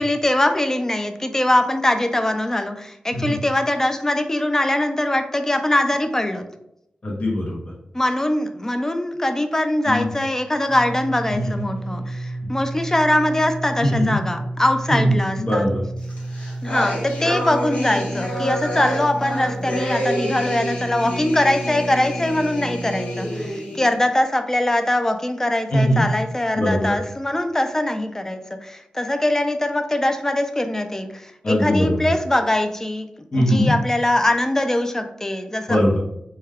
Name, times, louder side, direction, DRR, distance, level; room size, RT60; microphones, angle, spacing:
voice 1, 0.0-6.4 7.9-15.6 16.6-33.1 33.4-35.8, left 1 dB, 15° left, 7 dB, 0.3 m, -22 dB
voice 2, 7.0-7.7 9.8-10.1 11.3-11.5 13.8-14.2 14.9-15.8 25.7-26.1 26.5-26.9 31.4-32.1 33.3-33.7 35.7-36.0, equal, 45° left, -4 dB, 0.7 m, -20 dB
sound 1, 10.7-23.5, right 2 dB, 45° right, 0.5 m, -32 dB
sound 2, 16.1-24.0, equal, 70° left, 1.0 m, -28 dB
2.2 x 2.2 x 3.4 m, 0.78 s
cardioid pair, 60°, 3 cm